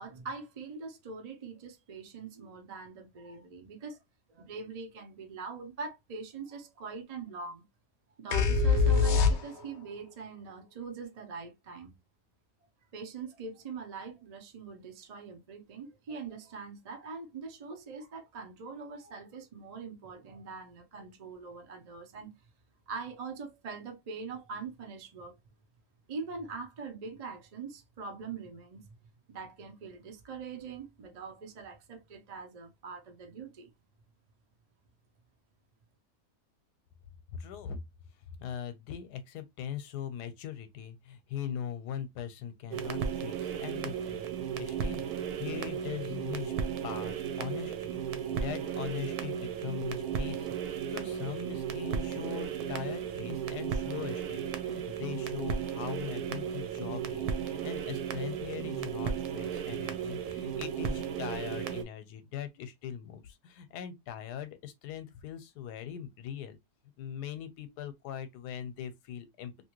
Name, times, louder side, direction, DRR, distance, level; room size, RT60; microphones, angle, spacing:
voice 1, 0.0-4.0 4.3-7.6 8.2-12.0 12.9-22.3 22.9-25.3 26.1-28.9 29.3-33.7, right 4 dB, 60° right, 0.4 m, -43 dB
sound 1, 8.3-9.9, left 5 dB, 65° left, 0.7 m, -24 dB
voice 2, 37.3-37.8 38.4-44.3 44.6-46.5 46.8-66.6 67.0-69.7, left 9 dB, 85° left, 1.2 m, -41 dB
sound 2, 42.7-61.8, right 8 dB, 75° right, 1.1 m, -35 dB
2.9 x 2.6 x 2.9 m
omnidirectional pair, 1.7 m